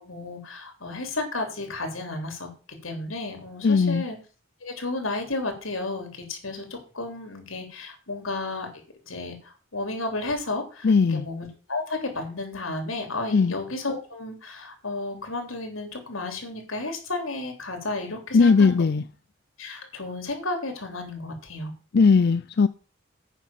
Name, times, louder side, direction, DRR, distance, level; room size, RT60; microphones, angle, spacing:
voice 1, 0.0-2.5 2.8-4.2 4.6-6.7 6.9-8.7 9.0-18.8 19.6-21.7, left 2 dB, 90° left, 3.5 m, -32 dB
voice 2, 3.6-4.0 10.8-11.3 13.3-13.5 18.3-19.0 21.9-22.7, left 4 dB, 55° left, 0.4 m, -18 dB
9.2 x 6.2 x 7.3 m
head